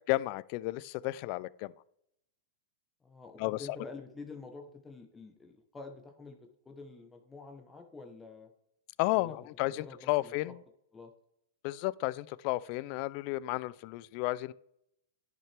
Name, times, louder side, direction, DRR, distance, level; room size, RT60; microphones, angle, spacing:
voice 1, 0.1-1.7 3.4-3.7 9.0-10.6 11.6-14.5, left 19 dB, 50° left, 20 dB, 0.3 m, -32 dB
voice 2, 3.0-8.5 9.1-9.4 9.7-10.4 10.9-11.1, left 3 dB, 15° left, 4 dB, 0.9 m, -48 dB
10.5 x 5.8 x 3.3 m, 0.76 s
hypercardioid pair, 135°, 0 cm